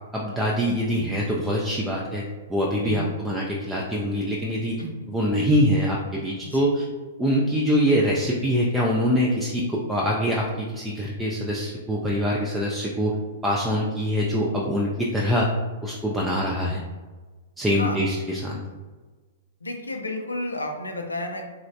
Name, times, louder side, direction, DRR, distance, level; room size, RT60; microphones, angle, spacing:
voice 1, 0.1-2.2 2.5-4.8 5.1-6.9 7.2-13.1 13.4-15.5 15.8-16.8 17.6-18.6, equal, 10° right, -4 dB, 0.3 m, -24 dB
voice 2, 6.4-6.7 17.8-18.0 19.6-21.5, left 1 dB, 90° left, 3 dB, 0.4 m, -31 dB
3.1 x 2.0 x 2.6 m, 1.3 s
figure-of-eight pair, 105°, 0 cm